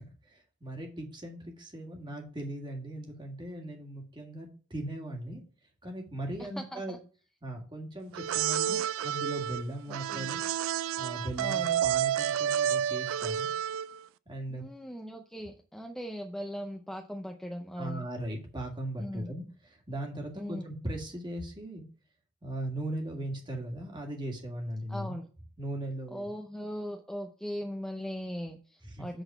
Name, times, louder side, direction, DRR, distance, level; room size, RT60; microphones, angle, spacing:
voice 1, 0.3-5.4 5.8-7.0 7.4-10.4 11.0-13.5 14.3-14.6 17.8-21.8 22.4-25.1 25.6-26.3 28.8-29.1, right 1 dB, 20° right, 2 dB, 1.8 m, -38 dB
voice 2, 6.4-7.0 8.6-8.9 9.9-10.3 11.4-11.8 14.5-18.0 19.0-19.3 20.4-20.7 24.9-25.3 26.1-29.2, equal, 5° left, 3 dB, 0.5 m, -39 dB
sound 1, 8.1-14.0, right 10 dB, 65° right, 0.3 m, -30 dB
7.9 x 4.0 x 5.6 m, 0.39 s
head